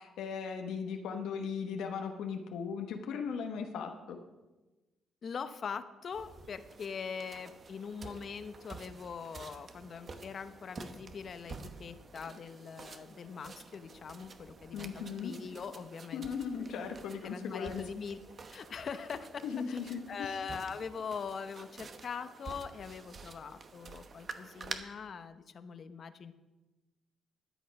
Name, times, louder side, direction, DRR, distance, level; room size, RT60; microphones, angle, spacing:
voice 1, 0.0-4.2 14.7-15.3 16.1-17.8 19.4-20.3, left 6 dB, 85° left, 4 dB, 1.1 m, -38 dB
voice 2, 5.2-14.9 15.2-16.3 17.2-18.2 18.5-26.3, left 6 dB, 50° left, 10 dB, 0.8 m, -42 dB
sound 1, 6.1-24.7, right 4 dB, 45° right, 1.0 m, -49 dB
13.0 x 8.3 x 5.3 m, 1.1 s
cardioid pair, 90°, 0 cm